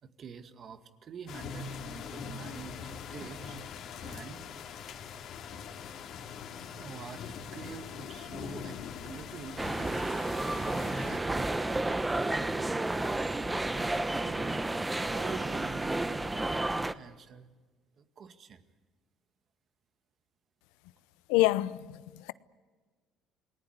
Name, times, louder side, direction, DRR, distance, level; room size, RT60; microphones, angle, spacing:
voice 1, 0.0-3.6 4.0-4.8 5.1-5.2 5.5-5.6 6.7-14.8 15.1-16.2 16.7-17.5 18.0-18.6, right 6 dB, 45° right, 2.0 m, -47 dB
sound 1, 1.3-11.2, left 6 dB, 60° left, 2.7 m, -42 dB
sound 2, 9.6-16.9, right 2 dB, 10° right, 1.0 m, -31 dB
voice 2, 21.3-22.3, left 17 dB, 90° left, 0.7 m, -27 dB
28.5 x 19.5 x 8.1 m
cardioid pair, 100°, 0 cm